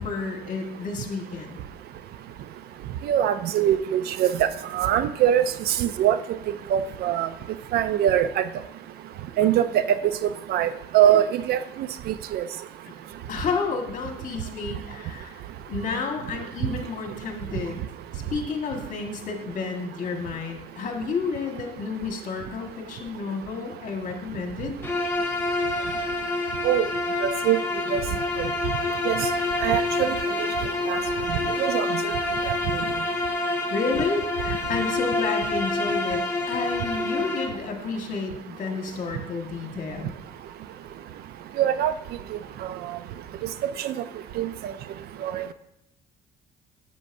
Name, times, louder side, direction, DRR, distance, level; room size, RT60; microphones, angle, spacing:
voice 1, 0.0-1.6 13.3-15.4 15.7-17.8 18.1-24.7 31.4-31.5 33.7-36.2 36.5-40.1, left 4 dB, 50° left, 3 dB, 1.6 m, -31 dB
voice 2, 3.1-4.5 4.7-6.2 6.7-7.3 7.7-8.5 9.4-10.0 10.5-11.6 12.1-12.4 26.6-26.8 27.2-27.6 27.9-28.0 28.4-28.5 29.1-29.3 29.6-30.1 30.9-31.0 31.3-31.4 31.7-32.0 41.6-41.9 43.8-43.9 44.4-44.5 45.2-45.5, right 10 dB, 70° right, 13 dB, 0.5 m, -22 dB
Bowed string instrument, 24.8-37.6, left 2 dB, 15° left, 1.1 m, -27 dB
9.9 x 7.4 x 2.6 m, 0.80 s
cardioid pair, 110°, 17 cm